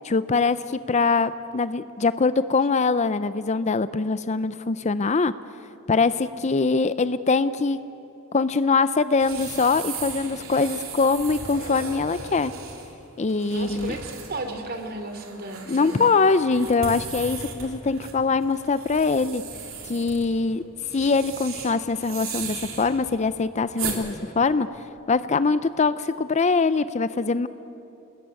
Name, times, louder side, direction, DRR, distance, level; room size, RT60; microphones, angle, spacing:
voice 1, 0.0-5.3 5.9-7.8 8.3-12.5 13.2-13.9 15.7-19.4 19.9-20.6 20.9-24.7 25.1-27.5, left 4 dB, 35° left, 14 dB, 0.5 m, -23 dB
sound 1, 9.2-24.0, right 5 dB, 75° right, 3.6 m, -37 dB
voice 2, 13.5-16.0, right 2 dB, 45° right, 6 dB, 2.8 m, -34 dB
28.5 x 20.5 x 9.5 m, 3.0 s
head